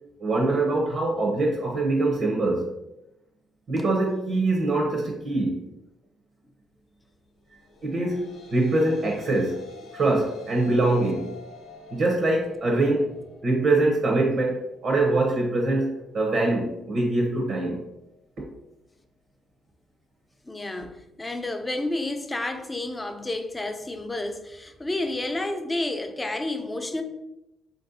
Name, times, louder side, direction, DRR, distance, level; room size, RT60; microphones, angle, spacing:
voice 1, 0.2-2.7 3.7-5.6 7.8-9.6 9.9-11.3 11.9-13.1 13.4-17.8, right 2 dB, 55° right, 0.6 m, -23 dB
sound 1, 7.7-16.2, left 3 dB, 75° left, 0.6 m, -48 dB
voice 2, 20.5-27.0, left 2 dB, 20° left, 0.3 m, -30 dB
3.2 x 2.6 x 2.6 m
cardioid pair, 90°, 0 cm